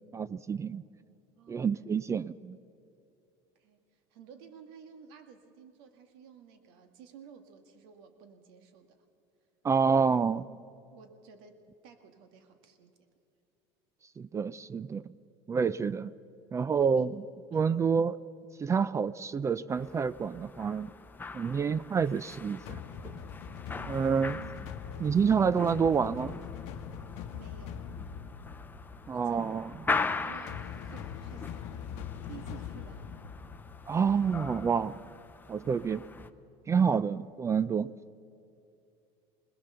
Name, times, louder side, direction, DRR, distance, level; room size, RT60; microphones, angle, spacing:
voice 1, 0.1-0.8 1.5-2.6 9.6-10.5 14.2-15.1 15.5-16.1 16.5-17.1 17.5-18.2 18.6-20.9 21.3-23.2 23.9-24.5 25.0-26.4 29.1-29.7 33.9-35.0 35.5-36.0 36.7-37.9, right 6 dB, 25° right, 18 dB, 0.4 m, -28 dB
voice 2, 1.4-2.0 3.6-9.0 10.9-12.9 16.8-17.1 17.5-17.8 23.7-24.2 27.3-27.9 29.1-29.4 30.2-31.6 31.9-33.1 36.8-37.0, right 7 dB, 80° right, 7 dB, 1.9 m, -53 dB
sound 1, 19.7-36.3, left 4 dB, 15° left, 0.9 m, -40 dB
sound 2, 22.7-34.6, left 8 dB, 65° left, 1.0 m, -43 dB
22.0 x 19.0 x 6.8 m, 2.6 s
supercardioid pair, 105°, 12 cm